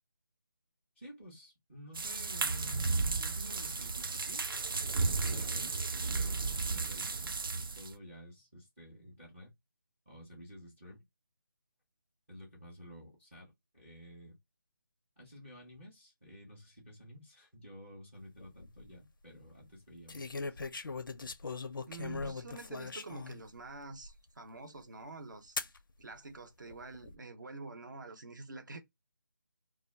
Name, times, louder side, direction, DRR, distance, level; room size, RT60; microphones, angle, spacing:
voice 1, 1.0-4.5 5.2-9.5 10.1-11.0 12.3-14.4 15.2-20.6, equal, 5° right, 0.3 m, -52 dB
sound 1, 1.9-7.9, right 4 dB, 80° right, 0.4 m, -34 dB
sound 2, 18.4-18.8 20.1-23.4 24.0-24.1 25.6-25.8 26.7-27.2, left 4 dB, 75° left, 0.5 m, -40 dB
voice 2, 21.9-25.6 26.0-28.8, right 3 dB, 60° right, 0.8 m, -47 dB
2.2 x 2.0 x 3.2 m
figure-of-eight pair, 170°, 12 cm